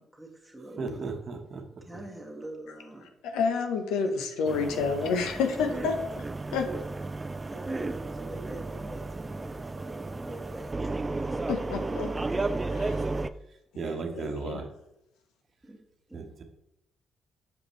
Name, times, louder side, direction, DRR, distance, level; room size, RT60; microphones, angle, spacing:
voice 1, 0.0-1.1 1.8-3.1 4.0-4.1 5.5-5.6 6.6-6.9 7.5-10.9 11.3-11.4 13.8-14.0 15.6-15.8 16.1-16.3, right 2 dB, 5° right, -2 dB, 1.7 m, -43 dB
voice 2, 0.8-1.6 13.8-14.7 16.1-16.4, right 4 dB, 55° right, 4 dB, 1.0 m, -35 dB
voice 3, 3.2-6.2 6.5-6.6 11.5-12.1 12.7-13.1 14.1-14.6, left 5 dB, 85° left, 5 dB, 0.8 m, -29 dB
sound 1, 4.4-13.3, right 3 dB, 25° right, 0.3 m, -33 dB
6.6 x 5.0 x 3.1 m, 0.83 s
supercardioid pair, 60°, 0 cm